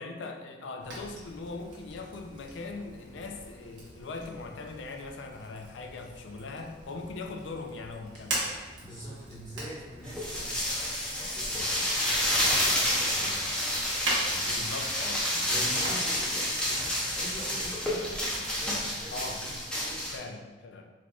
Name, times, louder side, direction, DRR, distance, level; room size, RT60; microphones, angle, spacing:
voice 1, 0.0-8.4 14.4-15.7 19.1-19.4 20.1-20.9, left 3 dB, 80° left, 4 dB, 0.4 m, -40 dB
Fire, 0.8-18.9, right 1 dB, 90° right, 1.1 m, -41 dB
voice 2, 8.8-13.5 14.2-15.1 15.4-18.2 18.5-20.1, equal, 25° left, -10 dB, 1.5 m, -44 dB
sound 1, 10.1-20.2, left 1 dB, 5° left, 0.6 m, -29 dB
4.1 x 3.0 x 2.3 m, 1.3 s
head